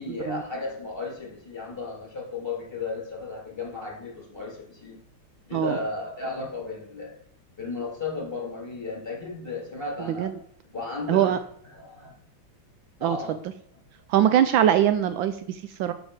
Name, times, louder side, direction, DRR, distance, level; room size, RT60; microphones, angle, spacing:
voice 1, 0.0-5.0 5.5-7.1 7.6-10.3 10.7-11.4 11.6-12.1 13.0-13.4, left 3 dB, 10° left, -2 dB, 3.1 m, -34 dB
voice 2, 11.1-11.4 13.0-13.2 14.1-15.9, right 10 dB, 75° right, 11 dB, 1.3 m, -22 dB
7.0 x 6.2 x 6.4 m, 0.64 s
omnidirectional pair, 2.2 m